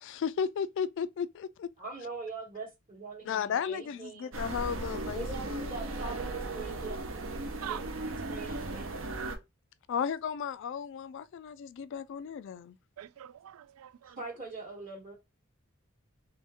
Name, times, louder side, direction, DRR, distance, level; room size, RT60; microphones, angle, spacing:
voice 1, 0.0-1.7 3.2-5.8 9.9-12.7, left 7 dB, 60° left, 0.3 m, -34 dB
voice 2, 1.8-4.3 5.1-7.3 7.6-9.3 14.0-15.2, right 3 dB, 35° right, 1.0 m, -43 dB
sound 1, 4.3-9.4, right 2 dB, 65° right, 0.7 m, -36 dB
voice 3, 7.6-7.9 13.0-14.2, right 10 dB, 90° right, 0.3 m, -43 dB
3.2 x 2.9 x 3.4 m
head